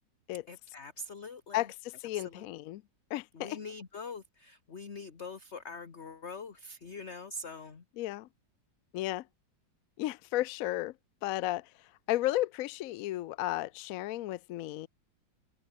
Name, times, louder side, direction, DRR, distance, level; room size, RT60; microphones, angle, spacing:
voice 1, 0.5-1.7 2.1-2.5 3.3-7.8, left 3 dB, 40° left, 1.8 m, -44 dB
voice 2, 1.5-2.8 3.1-3.6 8.0-8.3 8.9-9.3 10.0-10.9 11.2-14.9, left 15 dB, 75° left, 0.8 m, -34 dB
omnidirectional pair, 1.9 m